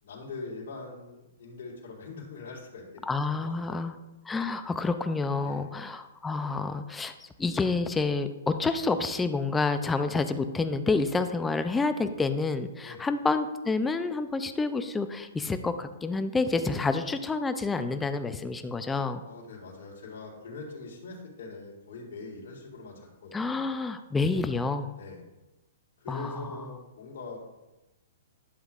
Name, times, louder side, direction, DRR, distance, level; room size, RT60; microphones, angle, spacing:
voice 1, 0.0-3.8 5.4-5.7 12.8-13.1 16.7-17.0 19.2-23.7 24.9-25.2 26.0-27.4, left 3 dB, 70° left, -9 dB, 3.0 m, -43 dB
voice 2, 3.1-3.9 4.3-19.2 23.3-24.9 26.1-26.4, left 3 dB, 10° left, 9 dB, 0.4 m, -28 dB
11.5 x 7.0 x 2.5 m, 1.0 s
hypercardioid pair, 160°, 0 cm